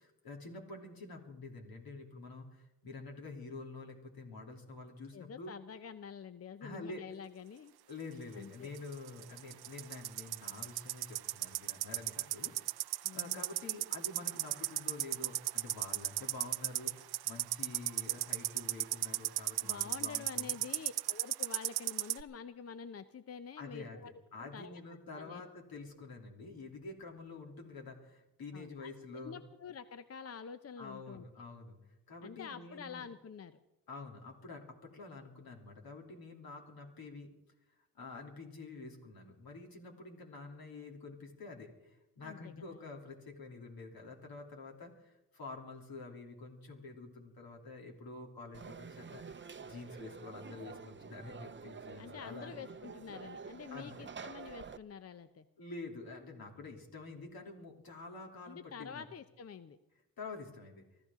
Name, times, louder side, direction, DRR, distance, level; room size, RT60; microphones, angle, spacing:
voice 1, 0.0-5.5 6.6-7.0 7.9-20.6 23.6-29.4 30.8-31.8 32.1-33.1 33.9-37.3 37.9-52.5 53.7-54.1 55.6-59.0 60.2-60.8, left 3 dB, 70° left, 1 dB, 3.1 m, -48 dB
voice 2, 5.1-7.7 8.3-8.7 13.0-13.4 19.6-24.1 24.4-24.8 25.1-25.4 28.5-28.9 29.2-31.3 32.2-33.6 42.2-42.9 52.0-55.5 58.5-59.8, left 6 dB, 40° left, 12 dB, 0.6 m, -48 dB
sound 1, 8.8-22.2, right 15 dB, 75° right, 0.5 m, -35 dB
Conversation / Crowd, 48.5-54.8, right 5 dB, 30° right, 0.7 m, -49 dB
24.0 x 13.5 x 3.7 m, 0.95 s
cardioid pair, 70°, 38 cm